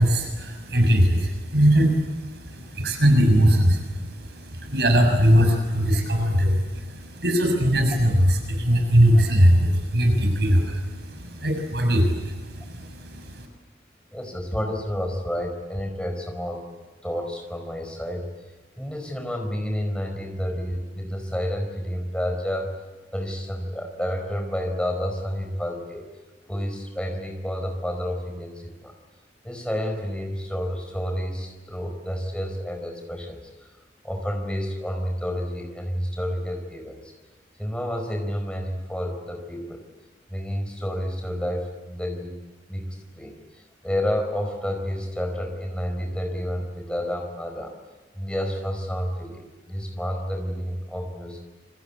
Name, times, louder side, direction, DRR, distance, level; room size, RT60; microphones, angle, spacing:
voice 1, 0.0-13.5, equal, 65° right, 4 dB, 6.4 m, -20 dB
voice 2, 14.1-16.6 17.0-18.3 18.8-22.7 23.1-26.0 26.5-28.9 29.4-33.7 34.0-37.1 37.6-39.8 40.3-42.4 42.7-47.7 48.1-51.4, equal, 5° left, 3 dB, 4.7 m, -30 dB
27.5 x 25.0 x 8.5 m, 1.2 s
head